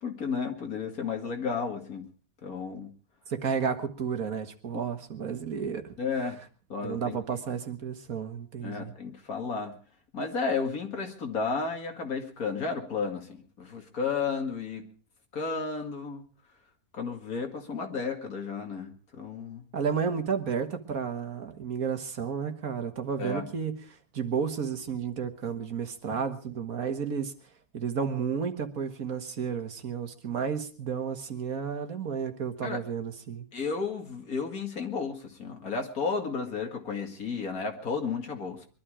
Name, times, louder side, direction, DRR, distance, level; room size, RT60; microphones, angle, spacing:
voice 1, 0.0-2.1 2.4-2.9 4.7-4.8 6.0-6.4 6.7-7.2 8.6-9.8 10.1-14.9 15.3-16.2 16.9-19.7 23.2-23.4 32.6-32.8 33.5-38.7, left 5 dB, 75° left, 4 dB, 2.7 m, -33 dB
voice 2, 3.3-5.9 6.8-8.9 19.7-23.8 24.1-27.3 27.7-33.5, right 6 dB, 70° right, 7 dB, 2.0 m, -32 dB
22.5 x 12.0 x 4.9 m, 0.40 s
omnidirectional pair, 1.5 m